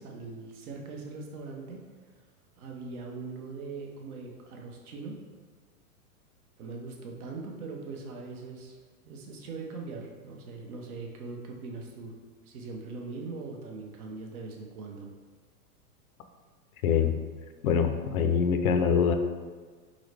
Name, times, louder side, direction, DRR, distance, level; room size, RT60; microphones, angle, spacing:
voice 1, 0.0-2.2 2.6-5.2 6.6-8.8 9.0-12.1 12.4-15.1, right 3 dB, 65° right, 1 dB, 1.1 m, -41 dB
voice 2, 16.8-17.2 17.6-19.1, left 6 dB, 65° left, 7 dB, 0.6 m, -24 dB
3.9 x 3.9 x 3.3 m, 1.5 s
hypercardioid pair, 135°, 47 cm